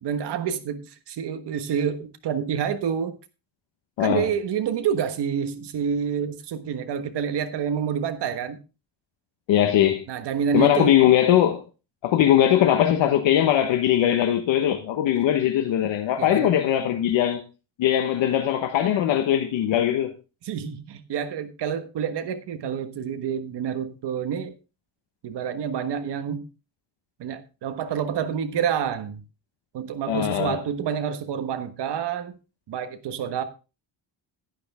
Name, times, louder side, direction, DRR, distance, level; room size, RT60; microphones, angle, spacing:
voice 1, 0.0-3.1 4.0-8.6 10.1-11.0 16.2-16.6 20.4-24.5 25.2-26.5 27.2-29.2 29.7-32.4 32.7-33.4, right 7 dB, 65° right, 1.4 m, -28 dB
voice 2, 4.0-4.3 9.5-10.0 10.5-11.6 12.0-17.4 17.8-20.1 30.1-30.6, left 11 dB, 90° left, 1.2 m, -20 dB
11.0 x 9.6 x 3.5 m
cardioid pair, 160°, 44 cm